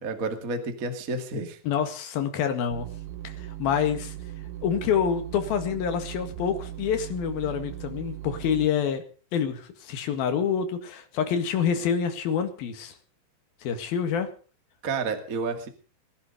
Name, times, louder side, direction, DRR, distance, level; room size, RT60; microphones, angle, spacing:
voice 1, 0.0-1.6 14.8-15.7, right 3 dB, 35° right, 6 dB, 1.4 m, -30 dB
voice 2, 1.6-2.9 3.2-4.1 4.6-9.0 9.3-12.9 13.6-14.3, left 7 dB, 60° left, 7 dB, 3.4 m, -27 dB
sound 1, 2.7-8.7, right 13 dB, 80° right, 2.2 m, -38 dB
21.0 x 11.0 x 5.3 m, 0.38 s
omnidirectional pair, 5.3 m